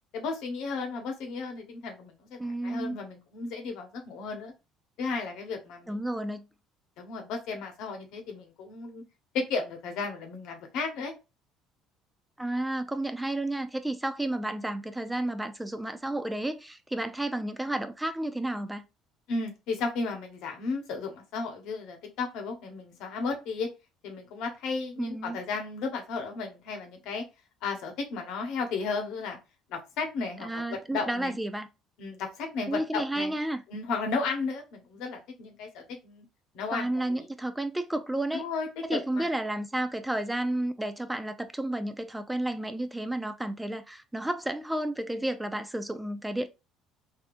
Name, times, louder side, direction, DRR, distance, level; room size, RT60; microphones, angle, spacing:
voice 1, 0.1-2.4 2.6-4.5 5.0-6.0 7.0-9.0 9.3-11.1 19.3-23.7 24.0-27.2 27.6-29.4 29.7-31.3 32.0-33.4 33.7-36.2 36.5-37.3 38.3-39.3, left 4 dB, 75° left, 1.1 m, -34 dB
voice 2, 2.4-3.0 5.9-6.5 12.4-18.8 25.0-25.4 30.4-31.7 32.7-33.6 36.7-38.4 38.9-46.5, right 1 dB, 5° right, 0.3 m, -31 dB
3.4 x 2.7 x 2.5 m
cardioid pair, 115°, 0 cm